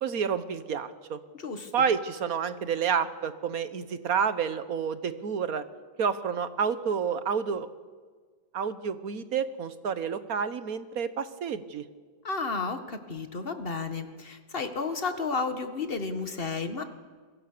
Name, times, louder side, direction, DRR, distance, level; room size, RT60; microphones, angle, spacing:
voice 1, 0.0-1.2 1.7-5.6 6.0-7.7 8.5-11.8, right 7 dB, 60° right, 12 dB, 1.6 m, -29 dB
voice 2, 1.4-1.7 12.2-16.8, left 4 dB, 35° left, 7 dB, 1.9 m, -32 dB
28.5 x 22.5 x 6.8 m, 1.5 s
omnidirectional pair, 1.8 m